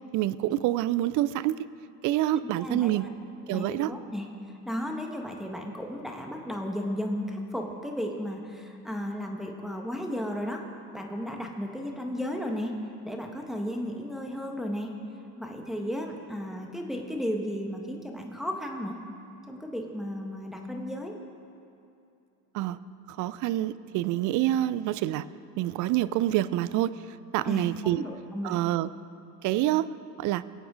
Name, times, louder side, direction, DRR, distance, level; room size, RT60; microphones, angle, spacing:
voice 1, 0.1-1.6 2.0-3.1 3.5-3.9 22.5-22.8 23.1-25.3 25.6-26.9 27.3-28.0 28.4-28.9 29.4-29.9 30.2-30.4, right 14 dB, 40° right, 17 dB, 0.4 m, -27 dB
voice 2, 2.6-3.1 3.5-4.3 4.6-10.6 10.9-12.7 13.0-14.9 15.4-19.0 19.5-21.1 27.4-28.6, equal, ahead, 1 dB, 1.4 m, -34 dB
21.0 x 8.5 x 3.8 m, 2.6 s
hypercardioid pair, 80°, 49 cm